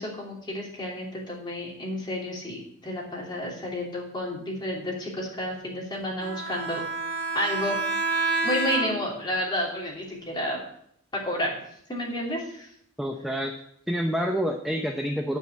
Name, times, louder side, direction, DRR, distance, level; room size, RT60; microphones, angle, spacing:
voice 1, 0.0-6.8 7.3-7.8 8.4-10.6 11.1-11.6 11.9-12.7, equal, 20° left, -3 dB, 2.9 m, -31 dB
Bowed string instrument, 6.2-9.2, right 3 dB, 70° left, 3.6 m, -28 dB
voice 2, 13.0-13.5 13.9-15.4, equal, ahead, 2 dB, 0.6 m, -27 dB
9.7 x 4.9 x 8.0 m, 0.71 s
head